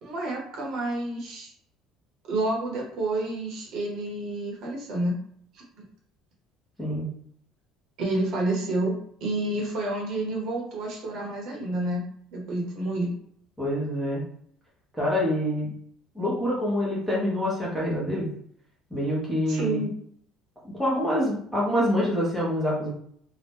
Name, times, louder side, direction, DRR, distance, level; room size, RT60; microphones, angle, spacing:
voice 1, 0.0-1.5 2.3-5.2 5.5-5.6 8.0-8.9 9.2-13.2 19.5-19.9, right 2 dB, 55° right, -1 dB, 1.1 m, -29 dB
voice 2, 13.6-14.2 15.0-15.7 16.1-18.3 18.9-19.8 20.7-22.9, equal, ahead, -7 dB, 1.0 m, -26 dB
2.8 x 2.4 x 3.5 m, 0.64 s
cardioid pair, 160°, 0 cm